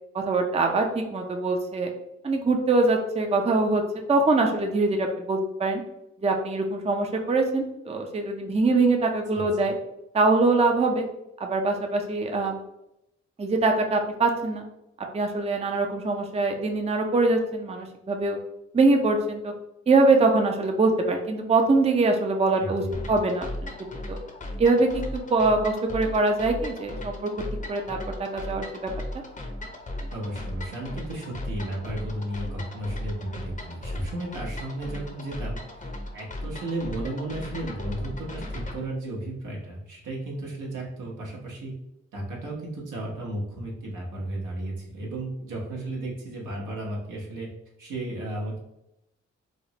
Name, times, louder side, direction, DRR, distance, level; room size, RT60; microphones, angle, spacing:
voice 1, 0.1-1.9 2.2-3.8 4.1-5.8 6.2-9.7 10.1-11.1 11.4-12.6 13.4-14.6 15.1-18.4 18.7-19.5 19.9-22.8 23.1-23.7 24.1-24.2 24.6-27.3 27.7-28.0 28.3-28.9, right 3 dB, 20° right, 3 dB, 0.5 m, -23 dB
voice 2, 9.3-9.7 22.6-23.0 30.1-41.7 42.1-47.5 47.8-48.6, right 1 dB, 75° right, -3 dB, 1.0 m, -34 dB
sound 1, 22.9-38.8, left 1 dB, 25° left, 0.7 m, -36 dB
3.2 x 2.0 x 2.8 m, 0.86 s
supercardioid pair, 40°, 31 cm